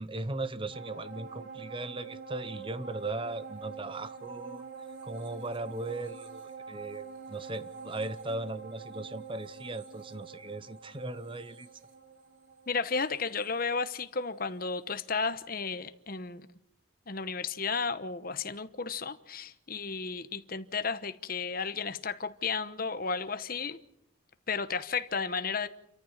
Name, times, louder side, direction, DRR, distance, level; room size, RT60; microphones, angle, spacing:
voice 1, 0.0-4.6 5.0-11.7, right 2 dB, 25° right, 0.9 m, -38 dB
sound 1, 0.7-14.4 14.8-14.9, right 5 dB, 65° right, 4.3 m, -46 dB
voice 2, 12.7-16.4 17.1-23.8 24.5-25.7, left 5 dB, 45° left, 1.0 m, -33 dB
28.5 x 14.0 x 7.4 m
head